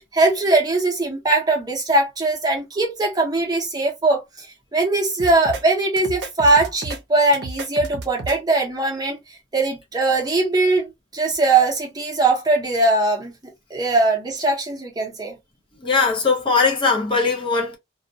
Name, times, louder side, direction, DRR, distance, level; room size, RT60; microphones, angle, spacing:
voice 1, 0.0-4.5 4.7-9.2 9.5-13.3 13.7-15.4, right 2 dB, 20° right, 0.7 m, -20 dB
sound 1, 5.2-5.6 6.0-7.0 7.3-8.4, right 3 dB, 60° right, 0.6 m, -32 dB
voice 2, 15.8-17.8, left 4 dB, 25° left, 0.5 m, -20 dB
2.2 x 2.1 x 2.6 m
head